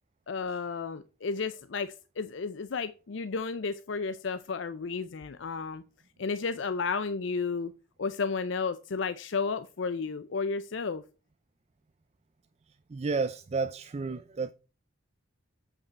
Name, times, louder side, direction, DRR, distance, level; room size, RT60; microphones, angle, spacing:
voice 1, 0.3-5.8 6.2-7.7 8.0-11.0, left 4 dB, 65° left, 0.5 m, -32 dB
voice 2, 12.9-14.5, right 4 dB, 30° right, 0.4 m, -31 dB
8.2 x 5.4 x 4.1 m
head